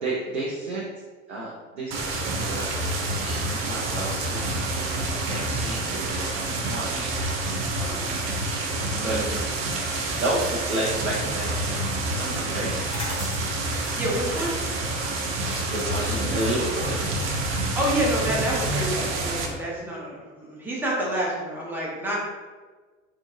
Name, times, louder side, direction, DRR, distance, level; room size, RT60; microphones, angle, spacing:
voice 1, 0.0-0.8 1.3-7.2 8.7-9.2 9.9-12.9 15.7-17.0, right 1 dB, 85° right, -6 dB, 0.6 m, -32 dB
sound 1, 1.9-19.5, right 2 dB, 35° right, 0.6 m, -28 dB
voice 2, 7.8-8.2 8.9-9.4 14.0-14.5 16.1-16.4 17.8-22.1, right 1 dB, 5° right, -6 dB, 1.0 m, -28 dB
sound 2, 12.7-18.3, equal, 15° left, 1.4 m, -41 dB
3.7 x 2.6 x 2.5 m, 1.4 s
figure-of-eight pair, 70°, 38 cm